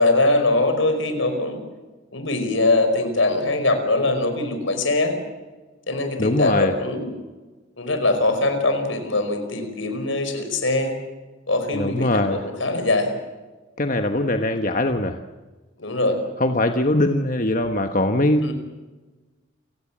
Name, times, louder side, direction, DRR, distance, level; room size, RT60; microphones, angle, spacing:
voice 1, 0.0-1.6 2.1-5.1 5.9-7.1 7.8-11.0 11.5-13.1 15.8-16.2 18.4-18.5, left 2 dB, 80° left, 7 dB, 5.2 m, -22 dB
voice 2, 6.2-6.7 11.7-12.4 13.8-15.2 16.4-18.5, left 1 dB, 45° left, 6 dB, 1.3 m, -21 dB
29.5 x 17.5 x 7.4 m, 1.2 s
head